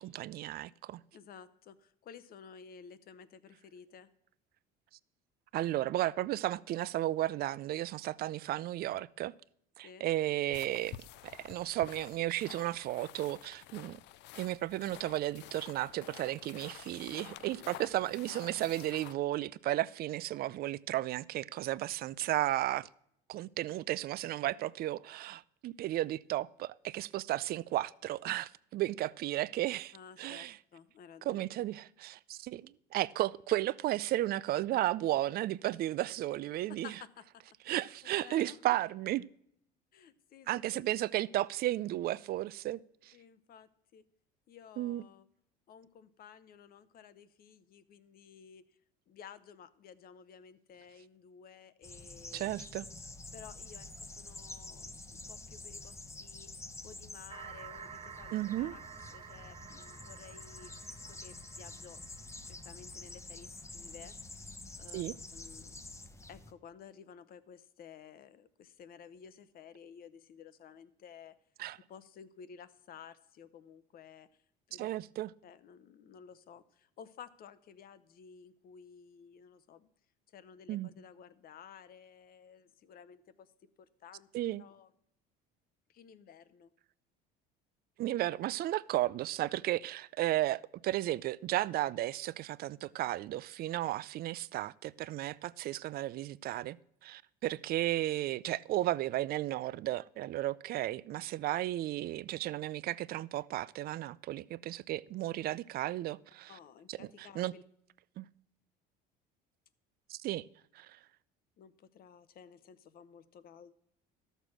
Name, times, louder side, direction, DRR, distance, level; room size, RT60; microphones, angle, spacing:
voice 1, 0.0-1.0 5.5-9.3 9.8-11.0 11.2-14.0 14.4-22.9 23.3-30.6 31.3-36.9 37.7-39.2 40.5-43.1 44.8-45.0 52.3-52.9 58.3-58.7 64.9-65.1 71.6-71.8 74.8-75.3 80.7-80.9 84.3-84.6 88.0-96.8 97.0-106.5 106.9-107.5 108.2-108.3 110.1-110.4 110.7-111.0, right 15 dB, 50° right, 0.4 m, -34 dB
voice 2, 1.1-4.1 9.8-10.1 29.9-31.4 36.8-38.6 39.9-40.9 43.1-44.0 44.5-45.3 45.7-48.8 49.1-52.5 53.3-58.8 59.1-64.1 64.8-65.0 65.3-65.8 66.3-71.3 71.9-74.4 74.7-74.9 75.4-79.9 80.3-84.3 84.6-84.9 85.9-86.7 106.5-107.6 111.6-113.7, left 7 dB, 50° left, 0.9 m, -54 dB
sound 1, 10.5-19.1, left 14 dB, 65° left, 0.5 m, -50 dB
sound 2, 51.8-66.5, left 2 dB, 15° left, 0.9 m, -48 dB
sound 3, 57.3-63.0, right 7 dB, 30° right, 0.9 m, -50 dB
12.5 x 6.7 x 6.1 m
supercardioid pair, 95°, 20 cm